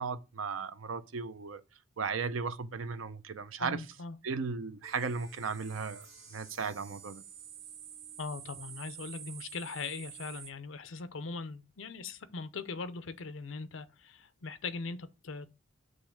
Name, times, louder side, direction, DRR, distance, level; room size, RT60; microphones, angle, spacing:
voice 1, 0.0-1.6 2.0-3.8 4.2-6.1 6.3-7.2, right 5 dB, 90° right, 0.6 m, -36 dB
voice 2, 3.6-4.2 8.2-15.5, left 4 dB, 75° left, 0.7 m, -40 dB
sound 1, 4.5-4.6 4.8-10.5, right 8 dB, 75° right, 2.1 m, -49 dB
6.6 x 3.2 x 5.9 m
head